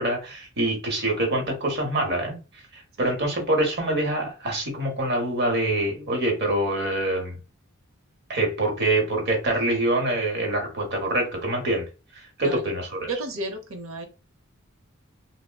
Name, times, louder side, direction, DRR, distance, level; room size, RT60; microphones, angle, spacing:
voice 1, 0.0-2.4 2.7-7.3 8.3-11.9 12.4-13.1, right 1 dB, 55° right, 0.9 m, -25 dB
voice 2, 13.0-14.0, right 2 dB, 80° right, 0.7 m, -32 dB
3.5 x 2.0 x 2.2 m
head